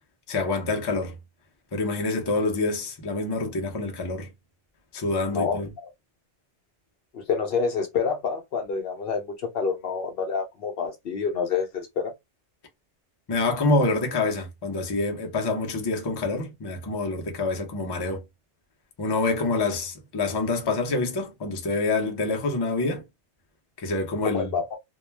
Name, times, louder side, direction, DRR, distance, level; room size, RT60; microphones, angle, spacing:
voice 1, 0.3-1.1 1.7-4.3 4.9-5.7 13.3-18.2 19.0-23.0 23.8-24.5, left 3 dB, 30° left, 0.5 m, -26 dB
voice 2, 7.1-12.1 24.2-24.8, left 5 dB, 65° left, 0.7 m, -27 dB
2.2 x 2.1 x 3.1 m
omnidirectional pair, 1.2 m